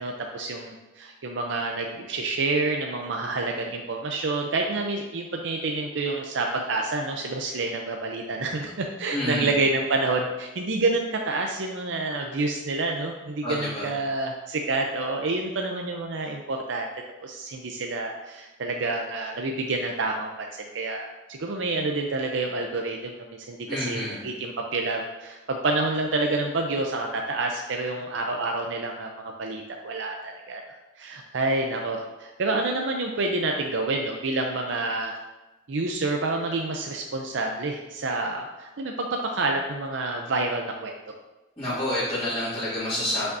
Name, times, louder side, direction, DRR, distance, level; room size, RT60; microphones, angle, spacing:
voice 1, 0.0-16.9 17.2-30.6 31.0-35.2 35.7-40.9, right 2 dB, 80° right, 2 dB, 0.6 m, -28 dB
voice 2, 9.1-9.5 13.4-13.9 23.7-24.2 41.6-43.3, left 1 dB, 20° left, -14 dB, 2.2 m, -28 dB
7.9 x 5.7 x 2.7 m, 1.1 s
head